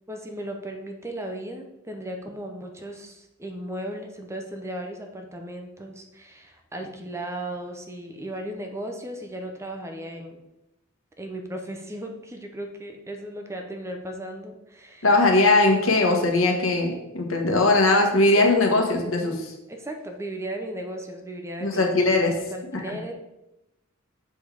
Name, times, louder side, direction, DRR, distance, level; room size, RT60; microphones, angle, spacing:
voice 1, 0.1-10.4 11.2-15.1 18.2-18.3 19.7-21.9 22.4-23.1, right 1 dB, 15° right, 3 dB, 0.7 m, -36 dB
voice 2, 15.0-19.5 21.6-22.3 22.7-22.8, left 2 dB, 80° left, 2 dB, 1.3 m, -20 dB
6.9 x 4.0 x 4.8 m, 0.91 s
head